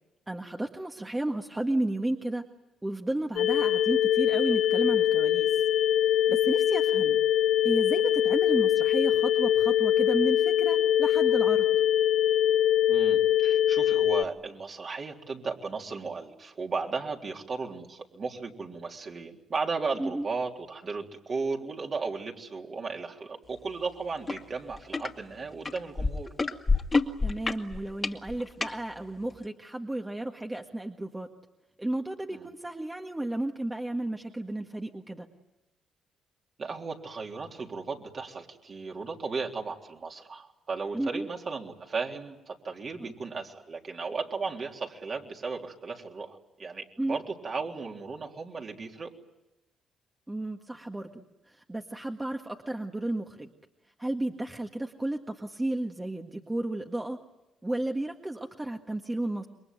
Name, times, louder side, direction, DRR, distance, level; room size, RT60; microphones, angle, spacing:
voice 1, 0.3-2.4 2.8-5.5 6.3-7.2 7.6-11.7 20.0-20.3 27.2-31.3 31.8-35.3 40.9-41.3 43.0-43.1 47.0-47.2 50.3-53.5 54.0-57.2 57.6-59.5, right 1 dB, 15° right, 3 dB, 1.8 m, -33 dB
sound 1, 3.4-14.2, left 11 dB, 80° left, 0.9 m, -23 dB
voice 2, 12.9-26.3 32.3-32.5 36.6-49.1, right 4 dB, 45° right, 1 dB, 3.6 m, -35 dB
sound 2, 24.3-24.4 24.7-25.1 25.7-28.7 29.4-29.5, left 3 dB, 30° left, 2.2 m, -27 dB
28.0 x 22.5 x 9.2 m, 0.96 s
cardioid pair, 90°, 0 cm